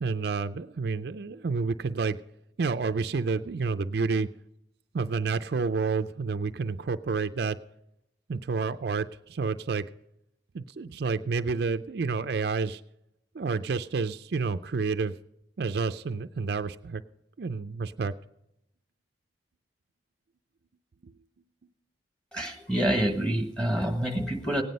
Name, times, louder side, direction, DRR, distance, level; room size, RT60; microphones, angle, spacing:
voice 1, 0.0-2.2 2.6-4.3 4.9-7.6 8.3-9.8 10.5-12.8 13.3-15.1 15.6-17.0 17.4-18.1 21.0-21.1, right 4 dB, 55° right, 10 dB, 0.4 m, -29 dB
voice 2, 22.3-24.6, right 1 dB, 5° left, 3 dB, 1.4 m, -27 dB
17.0 x 9.4 x 5.3 m, 0.82 s
head